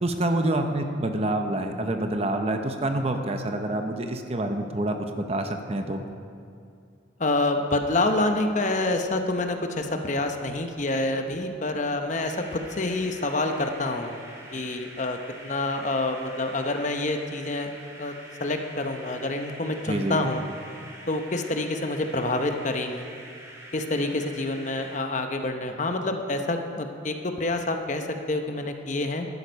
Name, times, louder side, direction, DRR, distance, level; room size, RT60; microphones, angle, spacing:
voice 1, 0.0-6.0 19.9-20.2, right 1 dB, 35° right, 5 dB, 0.8 m, -27 dB
voice 2, 7.2-14.2 14.5-15.2 15.4-17.7 18.0-18.1 18.4-20.4 21.1-23.0 23.7-29.3, left 2 dB, 40° left, 5 dB, 0.8 m, -27 dB
sound 1, 12.2-25.0, right 1 dB, 15° right, 2.1 m, -45 dB
12.0 x 11.5 x 5.3 m, 2.5 s
head